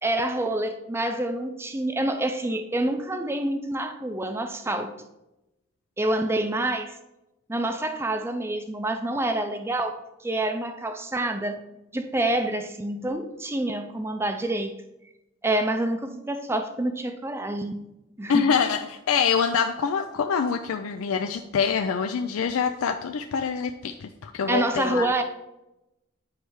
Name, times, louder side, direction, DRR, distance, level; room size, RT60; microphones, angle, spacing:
voice 1, 0.0-4.9 6.0-6.9 7.5-11.6 11.9-14.7 15.4-17.9 18.2-18.5 24.5-25.2, right 1 dB, 10° right, 7 dB, 0.4 m, -27 dB
voice 2, 18.3-25.1, left 6 dB, 85° left, 5 dB, 0.4 m, -25 dB
9.4 x 3.3 x 4.6 m, 0.92 s
head